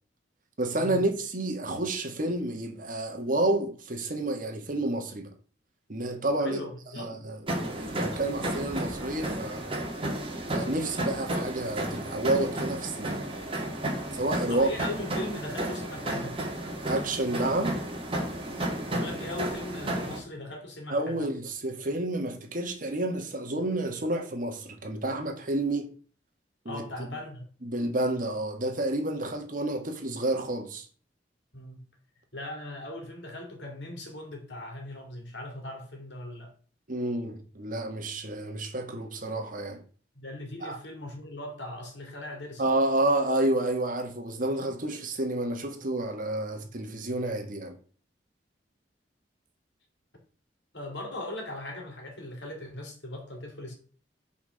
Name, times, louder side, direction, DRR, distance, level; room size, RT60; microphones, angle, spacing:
voice 1, 0.6-5.3 5.9-6.6 7.0-9.7 10.5-13.2 14.1-14.7 16.9-17.8 20.9-25.9 26.6-26.8 27.6-30.9 36.9-39.8 40.6-40.8 42.6-47.8, right 1 dB, 50° right, 1.4 m, -30 dB
voice 2, 6.4-7.2 14.5-16.4 18.9-21.3 26.7-27.4 31.5-31.8 32.3-36.5 40.1-42.7 46.5-46.7 50.7-53.7, left 1 dB, 85° left, 2.6 m, -39 dB
sound 1, 7.5-20.2, right 1 dB, 30° right, 1.8 m, -32 dB
5.8 x 4.3 x 6.2 m
head